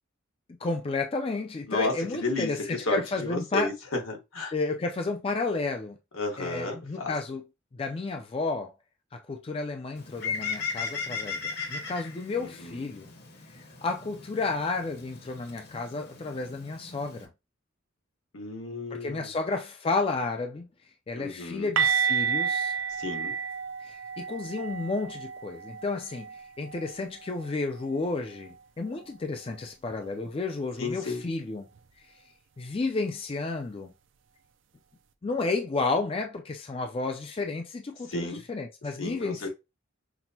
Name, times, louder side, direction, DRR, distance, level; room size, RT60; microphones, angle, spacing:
voice 1, 0.6-3.7 4.5-6.0 6.4-7.4 7.7-8.7 9.1-13.1 13.5-17.3 18.9-20.7 21.1-22.8 23.8-26.3 26.6-31.7 32.6-33.9 35.2-39.5, left 3 dB, 25° left, 0.3 m, -32 dB
voice 2, 1.7-4.5 6.1-7.1 12.3-12.9 18.3-19.3 21.2-21.7 22.9-23.3 30.8-31.2 38.1-38.4 39.0-39.5, left 2 dB, 85° left, 1.4 m, -33 dB
Bird, 10.0-17.3, left 5 dB, 50° left, 0.9 m, -37 dB
sound 1, 21.8-27.5 27.8-28.0 28.4-28.5 31.8-31.9, right 6 dB, 65° right, 0.4 m, -31 dB
6.0 x 2.1 x 2.8 m
head